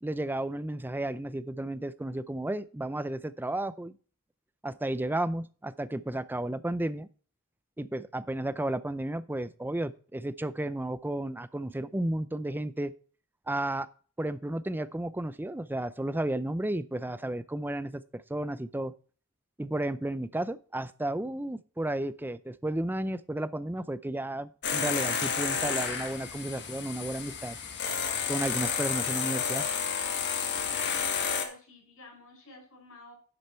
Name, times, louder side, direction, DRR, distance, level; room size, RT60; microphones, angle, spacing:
voice 1, 0.0-4.0 4.6-7.1 7.8-12.9 13.5-13.9 14.2-18.9 19.6-27.6 28.3-29.7, right 1 dB, 10° right, 14 dB, 0.5 m, -33 dB
sound 1, 24.6-31.4, left 6 dB, 50° left, 1.7 m, -31 dB
voice 2, 31.3-33.1, left 2 dB, 70° left, 1 dB, 5.5 m, -51 dB
11.0 x 6.6 x 4.5 m, 0.41 s
head